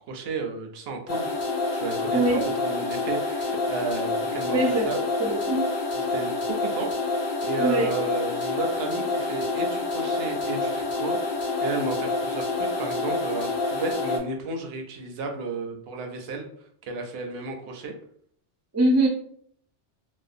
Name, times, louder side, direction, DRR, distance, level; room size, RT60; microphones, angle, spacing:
voice 1, 0.1-1.3 1.7-5.0 5.9-16.5 16.8-17.9, right 3 dB, 65° right, 3 dB, 0.7 m, -33 dB
sound 1, 1.1-14.2, left 3 dB, 55° left, 0.6 m, -28 dB
voice 2, 2.1-2.5 4.5-4.9 5.2-5.6 7.6-7.9 18.7-19.1, right 1 dB, 25° right, -1 dB, 0.3 m, -22 dB
2.6 x 2.1 x 2.5 m, 0.64 s
omnidirectional pair, 1.2 m